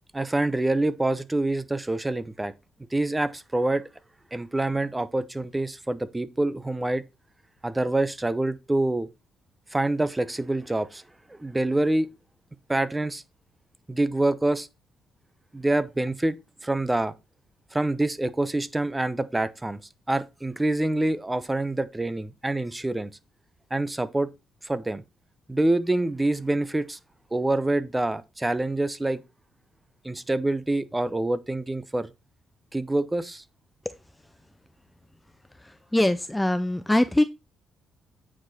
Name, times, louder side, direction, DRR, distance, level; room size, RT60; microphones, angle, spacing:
voice 1, 0.1-2.5 2.9-3.8 4.3-7.0 7.6-9.1 9.7-11.0 11.3-12.1 12.7-13.2 13.9-14.7 15.5-16.3 16.6-17.1 17.7-19.8 20.1-23.1 23.7-24.3 24.6-25.0 25.5-27.0 27.3-29.2 30.0-32.1 32.7-33.4, right 2 dB, 15° right, 0.8 m, -26 dB
voice 2, 35.6-37.2, left 1 dB, 10° left, 0.5 m, -23 dB
8.8 x 4.9 x 4.2 m
cardioid pair, 90°, 0 cm